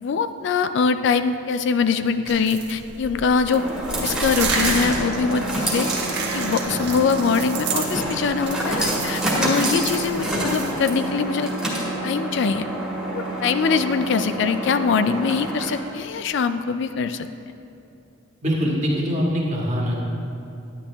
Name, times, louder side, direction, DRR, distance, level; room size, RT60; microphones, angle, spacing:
voice 1, 0.0-5.9 6.3-11.5 12.0-12.6 13.1-17.3, left 5 dB, 60° left, 11 dB, 0.3 m, -23 dB
sound 1, 2.1-16.0, right 1 dB, 5° right, 1.7 m, -28 dB
sound 2, 2.3-10.7, right 4 dB, 55° right, 1.2 m, -31 dB
voice 2, 18.4-19.9, equal, 35° right, -4 dB, 1.6 m, -23 dB
10.5 x 10.0 x 3.4 m, 2.7 s
head